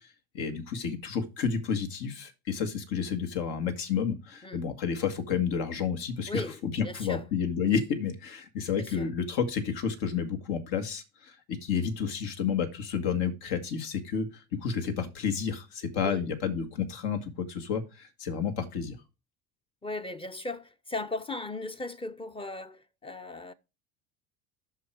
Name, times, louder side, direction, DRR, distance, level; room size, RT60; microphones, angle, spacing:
voice 1, 0.3-14.3 14.6-19.0, left 6 dB, 65° left, 2.0 m, -30 dB
voice 2, 6.3-7.2 8.7-9.1 16.0-16.2 19.8-23.5, left 2 dB, 10° left, 0.8 m, -37 dB
8.2 x 6.5 x 4.6 m
supercardioid pair, 90°, 43 cm